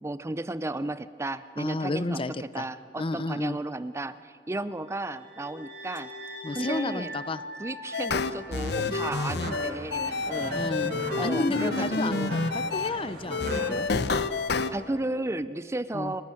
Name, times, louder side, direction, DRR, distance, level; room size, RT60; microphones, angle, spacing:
voice 1, 0.0-6.1 6.5-7.1 7.6-10.6 11.1-12.4 14.7-16.2, right 2 dB, 15° right, 14 dB, 0.5 m, -34 dB
voice 2, 1.6-2.6 3.0-3.6 6.4-7.4 8.9-9.0 9.4-9.5 10.5-10.9 11.2-13.9 15.9-16.1, left 2 dB, 30° left, 14 dB, 0.7 m, -32 dB
sound 1, 4.8-9.1, equal, 85° right, 5.7 m, -42 dB
sound 2, 7.9-12.9 13.3-14.7, left 4 dB, 65° left, 0.9 m, -28 dB
sound 3, 8.5-13.7, right 1 dB, 60° right, 5.1 m, -38 dB
29.0 x 12.0 x 9.0 m, 2.2 s
head